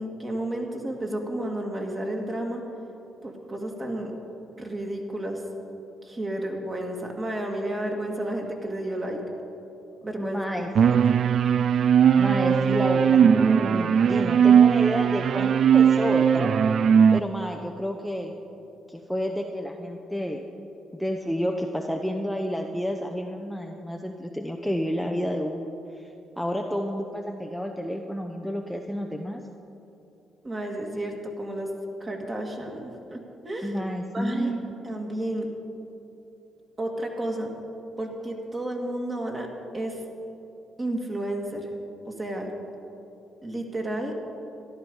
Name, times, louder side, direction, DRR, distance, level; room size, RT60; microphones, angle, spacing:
voice 1, 0.0-2.6 3.2-4.1 4.6-5.4 6.0-9.2 10.0-10.4 30.4-31.7 32.0-33.2 33.4-33.8 34.1-34.5 34.8-35.5 36.8-37.5 38.0-39.5 39.7-40.0 40.8-41.7 42.1-42.5 43.4-44.2, right 1 dB, 25° right, 1 dB, 2.1 m, -31 dB
voice 2, 10.2-10.7 11.2-11.3 12.2-16.6 17.1-18.3 18.9-20.4 20.9-25.7 25.9-26.1 26.4-29.4 33.6-34.7, equal, ahead, 2 dB, 0.7 m, -30 dB
sound 1, 10.7-17.2, right 7 dB, 60° right, 0.3 m, -19 dB
13.5 x 11.5 x 5.4 m, 2.9 s
cardioid pair, 90°, 0 cm